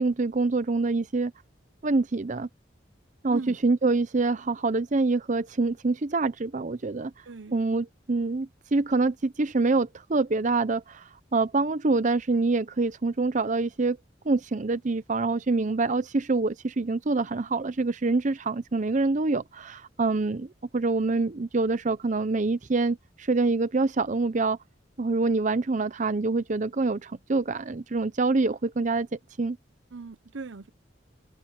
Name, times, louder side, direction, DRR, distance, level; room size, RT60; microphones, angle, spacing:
voice 1, 0.0-1.3 1.8-2.5 3.2-7.1 7.5-14.0 14.2-24.6 25.0-29.6, right 3 dB, 40° right, 0.6 m, -26 dB
voice 2, 7.3-7.6 29.9-30.7, right 3 dB, 75° right, 0.8 m, -39 dB
open air
head